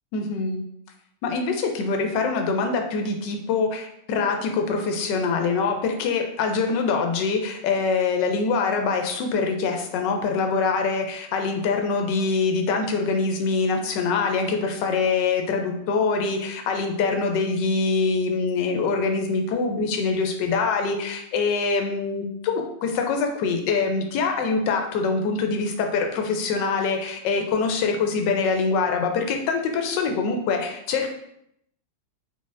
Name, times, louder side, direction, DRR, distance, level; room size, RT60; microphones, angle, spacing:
voice 1, 0.1-0.6 1.2-31.1, left 4 dB, 80° left, 4 dB, 1.3 m, -24 dB
4.0 x 3.9 x 2.5 m, 0.74 s
omnidirectional pair, 1.9 m